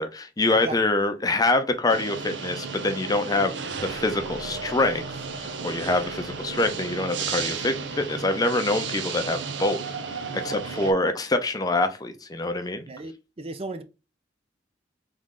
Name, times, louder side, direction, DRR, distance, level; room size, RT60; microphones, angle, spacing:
voice 1, 0.0-3.5 3.8-5.1 5.4-9.8 10.1-12.8, left 2 dB, 20° left, 0.5 m, -25 dB
sound 1, 1.9-10.9, right 5 dB, 85° right, 0.7 m, -33 dB
voice 2, 12.9-13.8, right 3 dB, 35° right, 0.5 m, -35 dB
3.7 x 3.1 x 3.7 m
head